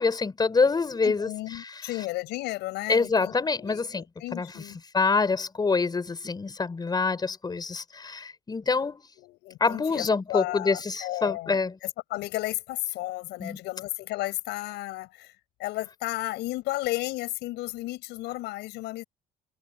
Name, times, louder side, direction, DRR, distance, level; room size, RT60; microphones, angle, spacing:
voice 1, 0.0-1.3 1.6-1.8 2.9-4.0 4.3-4.5 4.9-9.0 9.6-11.7 13.4-13.6, left 4 dB, 25° left, 4.6 m, -26 dB
voice 2, 1.0-4.8 9.2-19.0, left 18 dB, 85° left, 7.8 m, -33 dB
cardioid pair, 110°, 17 cm